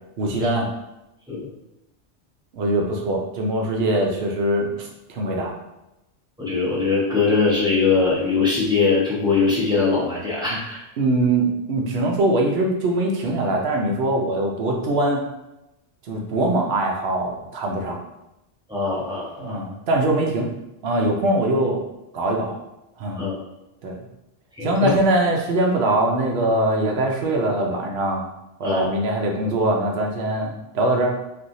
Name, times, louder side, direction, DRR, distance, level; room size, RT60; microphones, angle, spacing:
voice 1, 0.2-0.7 2.5-5.5 10.5-10.6 11.0-15.2 16.1-18.0 19.4-20.5 20.8-21.8 22.1-22.5 23.0-23.2 23.8-24.0 24.6-28.2 28.6-31.1, right 1 dB, 65° right, 1 dB, 0.8 m, -22 dB
voice 2, 6.4-10.8 18.7-19.6 23.2-23.3 24.6-24.9 28.6-28.8, left 4 dB, 5° right, -8 dB, 0.9 m, -21 dB
3.2 x 2.6 x 2.6 m, 0.94 s
omnidirectional pair, 1.2 m